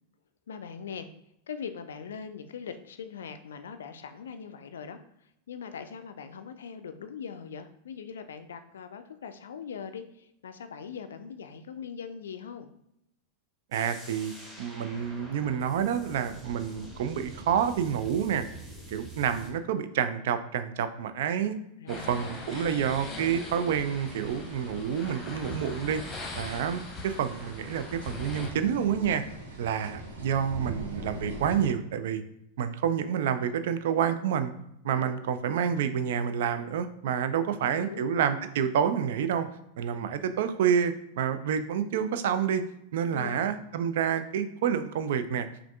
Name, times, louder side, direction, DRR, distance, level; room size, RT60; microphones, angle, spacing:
voice 1, 0.5-1.1 1.5-5.0 5.5-12.7 21.8-22.8 37.5-38.1 43.1-43.5, left 6 dB, 65° left, 9 dB, 0.3 m, -41 dB
sound 1, 13.7-19.5, right 1 dB, 5° right, 1.1 m, -46 dB
voice 2, 13.7-14.3 14.6-18.5 18.9-21.6 21.9-26.0 26.4-29.2 29.6-32.2 32.6-34.5 34.8-39.5 39.8-42.6 42.9-45.5, right 8 dB, 55° right, 11 dB, 0.3 m, -28 dB
sound 2, 21.9-28.5, left 2 dB, 15° left, 0.9 m, -41 dB
sound 3, 21.9-31.7, right 2 dB, 75° right, 1.3 m, -44 dB
5.7 x 2.5 x 2.3 m, 0.79 s
figure-of-eight pair, 90°, 0 cm